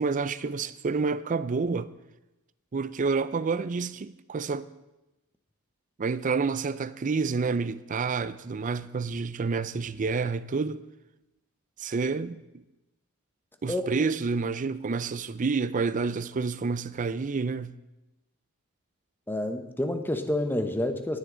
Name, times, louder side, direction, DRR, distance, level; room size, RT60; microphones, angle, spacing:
voice 1, 0.0-1.9 2.7-4.7 6.0-10.8 11.8-12.4 13.6-17.7, right 4 dB, 35° right, 0.4 m, -29 dB
voice 2, 13.7-14.1 19.3-21.2, left 1 dB, 10° left, 0.9 m, -29 dB
18.0 x 9.9 x 3.9 m
head